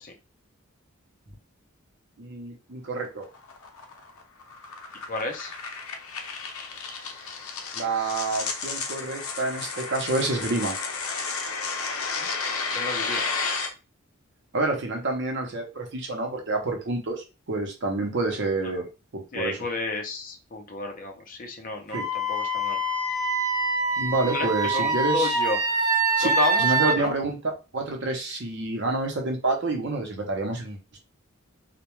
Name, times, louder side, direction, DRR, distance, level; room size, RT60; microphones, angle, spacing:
voice 1, 2.2-3.3 7.7-10.7 14.5-18.8 19.3-19.6 21.9-22.0 24.0-25.4 26.2-26.3 26.6-31.0, right 2 dB, 55° right, 2 dB, 0.6 m, -28 dB
sound 1, 3.0-13.7, left 4 dB, 85° left, 0.5 m, -32 dB
voice 2, 5.1-5.5 12.2-12.3 12.7-13.2 19.3-22.0 22.3-22.8 24.3-24.5 24.7-25.6 26.2-27.2, left 3 dB, 40° left, 3 dB, 0.5 m, -31 dB
Wind instrument woodwind instrument, 21.9-27.0, right 3 dB, 15° right, 0.4 m, -25 dB
2.2 x 2.1 x 3.0 m, 0.29 s
head